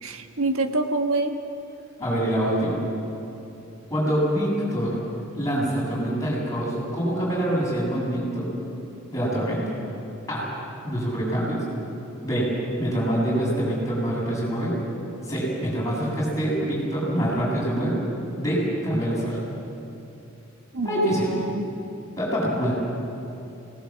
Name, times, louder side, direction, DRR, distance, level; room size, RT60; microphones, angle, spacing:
voice 1, 0.0-1.3 20.7-21.7, right 2 dB, 85° right, 5 dB, 1.5 m, -26 dB
voice 2, 2.0-2.8 3.9-5.0 5.3-8.5 9.1-9.6 10.3-10.5 10.8-11.6 12.2-12.5 12.8-14.7 15.2-18.0 18.4-19.4 20.8-21.4 22.2-22.7, right 1 dB, 15° left, -6 dB, 7.6 m, -25 dB
24.5 x 19.5 x 7.4 m, 2.8 s
head